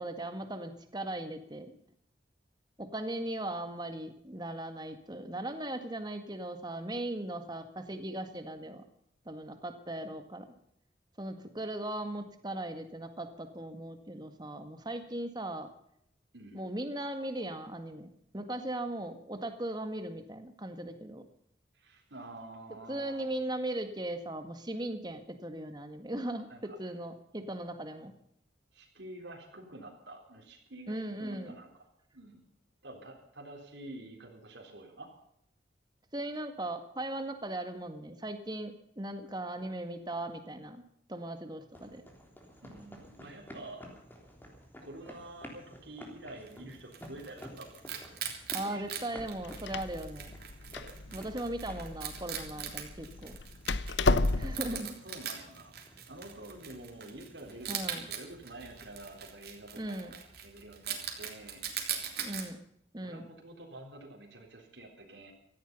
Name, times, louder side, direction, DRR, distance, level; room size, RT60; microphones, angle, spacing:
voice 1, 0.0-1.7 2.8-8.8 9.3-10.5 11.2-15.7 16.5-21.2 22.9-28.1 30.9-31.6 36.1-40.8 41.1-42.0 48.5-50.4 51.1-53.4 54.4-54.9 57.7-58.1 59.7-60.1 62.2-62.6 62.9-63.3, right 1 dB, 25° right, 8 dB, 1.9 m, -38 dB
voice 2, 16.3-16.6 21.7-23.2 26.5-26.8 28.7-31.7 32.1-32.4 32.8-35.1 42.6-43.9 44.8-47.8 48.6-48.9 51.0-51.3 54.0-62.0 63.0-65.3, right 2 dB, 75° right, 0 dB, 3.8 m, -48 dB
sound 1, 41.7-59.2, equal, 10° left, 3.4 m, -53 dB
Wild animals, 46.5-62.5, right 8 dB, 55° right, 3.3 m, -42 dB
Door, 49.2-54.8, left 2 dB, 80° left, 0.9 m, -33 dB
17.5 x 14.5 x 5.4 m, 0.73 s
head